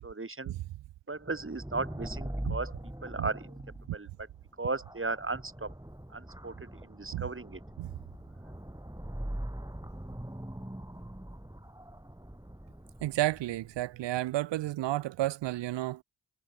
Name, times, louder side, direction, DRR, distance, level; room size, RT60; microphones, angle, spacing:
voice 1, 0.0-0.5 1.1-3.6 3.9-4.1 4.6-5.7 6.1-7.6, right 3 dB, 30° right, 3.3 m, -36 dB
sound 1, 1.2-13.8, right 1 dB, 10° right, 7.0 m, -42 dB
voice 2, 13.0-16.0, right 15 dB, 90° right, 0.7 m, -31 dB
supercardioid pair, 45°, 42 cm